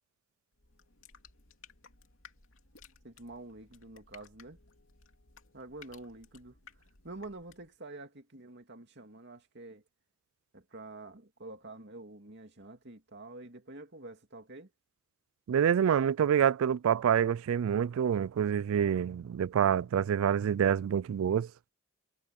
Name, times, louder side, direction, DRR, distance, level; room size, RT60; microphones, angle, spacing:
sound 1, 0.5-7.8, left 6 dB, 65° left, 3.0 m, -58 dB
voice 1, 3.0-4.6 5.5-6.6 7.0-9.8 10.5-14.7, right 2 dB, 55° right, 2.6 m, -47 dB
voice 2, 15.5-21.5, right 8 dB, 75° right, 0.3 m, -27 dB
head